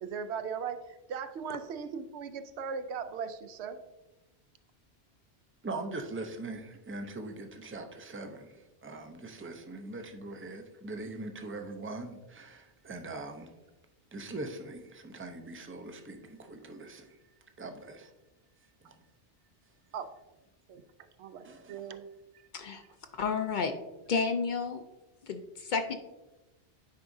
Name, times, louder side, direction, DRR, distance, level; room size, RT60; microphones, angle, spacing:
voice 1, 0.0-3.8 19.9-20.1 20.7-20.8 21.2-22.1 22.3-22.5, right 6 dB, 80° right, 10 dB, 0.8 m, -38 dB
voice 2, 5.6-13.5 14.1-17.2 17.6-18.1 18.8-19.0 21.4-21.9, right 2 dB, 20° right, 6 dB, 0.3 m, -42 dB
voice 3, 23.1-23.7 24.1-24.8 25.2-26.0, left 5 dB, 55° left, 7 dB, 0.6 m, -31 dB
9.4 x 4.7 x 2.6 m, 1.0 s
omnidirectional pair, 1.1 m